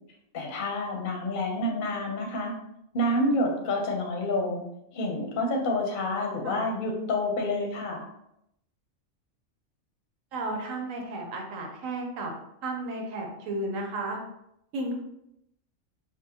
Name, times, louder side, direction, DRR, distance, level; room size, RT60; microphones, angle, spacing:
voice 1, 0.3-2.5 2.9-4.7 4.9-8.0, left 1 dB, 45° left, 1 dB, 0.8 m, -28 dB
voice 2, 10.3-12.3 12.6-14.2 14.7-15.0, right 2 dB, 90° right, 2 dB, 1.1 m, -33 dB
5.2 x 2.1 x 2.8 m, 0.79 s
omnidirectional pair, 1.3 m